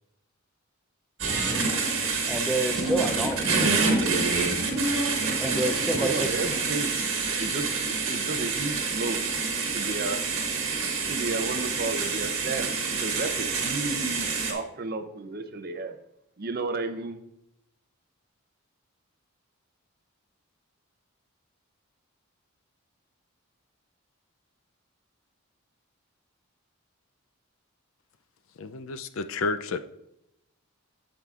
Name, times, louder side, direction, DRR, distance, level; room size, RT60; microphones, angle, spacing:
sound 1, 1.2-14.5, right 4 dB, 60° right, 1.7 m, -27 dB
voice 1, 2.2-3.8 5.4-6.3, right 1 dB, ahead, 5 dB, 0.5 m, -29 dB
voice 2, 6.0-6.9 7.4-9.2 9.7-10.2 11.1-15.9 16.4-17.2, right 3 dB, 45° right, 8 dB, 0.6 m, -33 dB
voice 3, 28.6-29.8, left 3 dB, 65° left, 11 dB, 0.4 m, -31 dB
8.6 x 7.7 x 2.4 m, 0.83 s
head